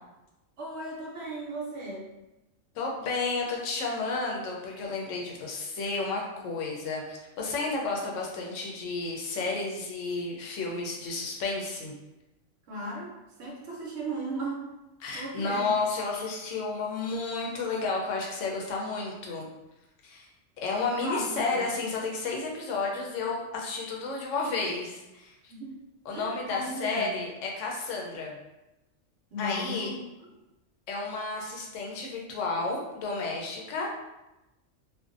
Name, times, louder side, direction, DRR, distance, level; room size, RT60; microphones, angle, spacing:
voice 1, 0.6-2.1 12.7-14.6 15.1-15.7 21.0-21.7 25.5-25.7 26.1-27.2 29.3-30.0, right 1 dB, 65° right, -2 dB, 0.9 m, -36 dB
voice 2, 2.7-12.0 15.0-19.5 20.0-20.3 20.6-25.3 26.1-28.4 29.4-29.9 30.9-33.9, left 3 dB, 80° left, -1 dB, 0.9 m, -32 dB
2.5 x 2.2 x 2.4 m, 0.97 s
omnidirectional pair, 1.3 m